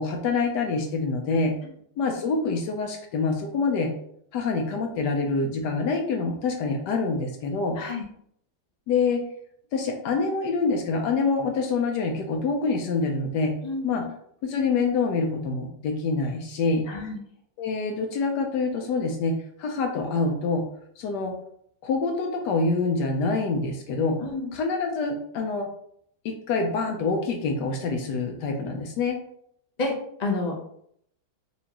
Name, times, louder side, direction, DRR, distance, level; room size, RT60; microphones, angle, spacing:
voice 1, 0.0-1.5 2.0-3.9 4.3-7.8 8.9-9.2 9.7-13.5 13.8-14.0 14.4-16.8 17.6-20.6 21.0-21.3 21.8-24.2 24.5-25.7 26.2-29.2, left 4 dB, 80° left, 3 dB, 1.2 m, -26 dB
voice 2, 13.6-14.1 16.9-17.2 24.2-24.5 29.8-29.9 30.2-30.6, left 3 dB, 65° left, -1 dB, 0.4 m, -29 dB
4.2 x 2.7 x 2.8 m, 0.68 s
omnidirectional pair, 1.8 m